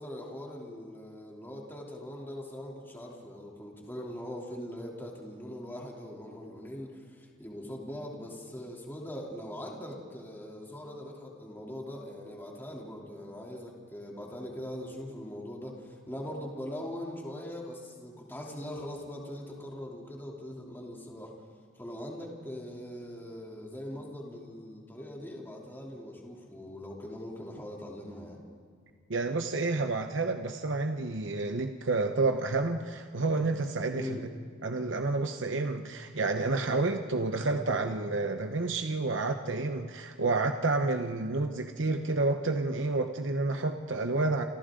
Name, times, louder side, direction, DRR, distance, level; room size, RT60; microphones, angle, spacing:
voice 1, 0.0-21.3 21.8-28.4 33.9-34.3, equal, 10° left, -2 dB, 3.1 m, -41 dB
voice 2, 29.1-34.2 34.6-44.4, right 3 dB, 75° right, 6 dB, 1.0 m, -29 dB
29.0 x 28.5 x 3.8 m, 2.2 s
head